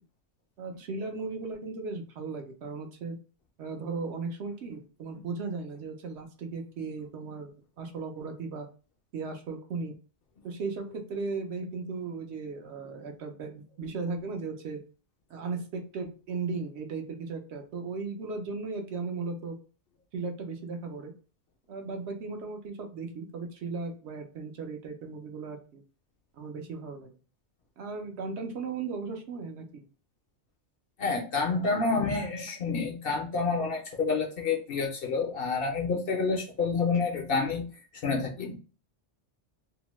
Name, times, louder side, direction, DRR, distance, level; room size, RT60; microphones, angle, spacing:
voice 1, 0.6-3.2 3.6-7.5 7.8-8.7 9.1-9.9 10.4-14.8 15.3-19.6 20.1-21.1 21.7-25.8 26.4-27.1 27.8-29.9, right 4 dB, 70° right, 4 dB, 0.9 m, -36 dB
voice 2, 31.0-37.6 38.0-38.6, left 4 dB, 60° left, 1 dB, 0.7 m, -28 dB
2.7 x 2.1 x 3.0 m, 0.36 s
omnidirectional pair, 1.2 m